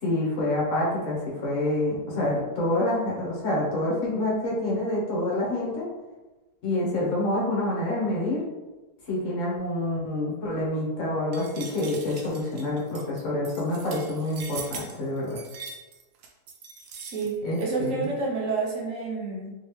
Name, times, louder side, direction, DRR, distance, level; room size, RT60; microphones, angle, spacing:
voice 1, 0.0-5.8 6.6-8.4 9.1-15.4 17.4-18.1, left 1 dB, 50° left, -4 dB, 1.4 m, -27 dB
sound 1, 11.3-17.7, right 5 dB, 80° right, 1.2 m, -42 dB
voice 2, 17.0-19.5, right 4 dB, 55° right, -2 dB, 1.1 m, -29 dB
3.4 x 3.3 x 3.1 m, 1.1 s
omnidirectional pair, 1.8 m